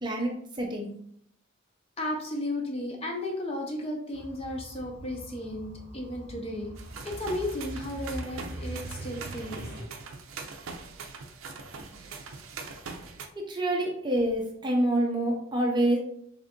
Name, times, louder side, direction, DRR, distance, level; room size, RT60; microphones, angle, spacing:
voice 1, 0.0-0.9 13.4-16.0, right 1 dB, 20° right, 1 dB, 0.5 m, -27 dB
voice 2, 2.0-6.7 7.0-9.9, left 1 dB, 30° left, 1 dB, 0.7 m, -34 dB
sound 1, 4.1-9.8, right 1 dB, 45° right, 0.8 m, -42 dB
sound 2, 6.8-13.3, right 4 dB, 80° right, 0.5 m, -42 dB
3.5 x 2.5 x 3.6 m, 0.66 s
head